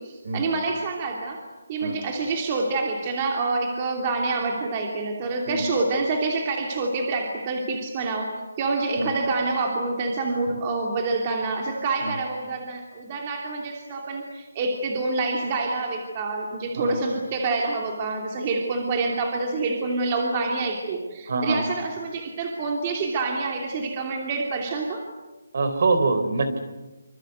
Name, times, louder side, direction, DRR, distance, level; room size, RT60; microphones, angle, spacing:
voice 1, 0.0-1.4 1.7-25.0, right 3 dB, 20° right, 1 dB, 2.9 m, -27 dB
voice 2, 21.3-21.6 25.5-26.6, right 3 dB, 45° right, 9 dB, 3.9 m, -24 dB
27.0 x 26.0 x 8.0 m, 1.1 s
hypercardioid pair, 175°, 0 cm